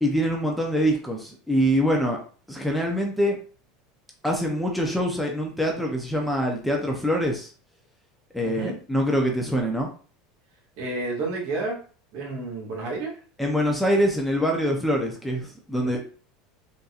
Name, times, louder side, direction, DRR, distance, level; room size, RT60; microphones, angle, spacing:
voice 1, 0.0-2.2 2.5-3.4 4.2-7.5 8.3-9.9 13.4-16.0, equal, ahead, 1 dB, 0.6 m, -24 dB
voice 2, 8.4-8.8 10.8-11.8 12.1-13.2 15.8-15.9, right 3 dB, 60° right, -1 dB, 1.5 m, -30 dB
3.8 x 2.7 x 2.4 m, 0.40 s
supercardioid pair, 130°, 0 cm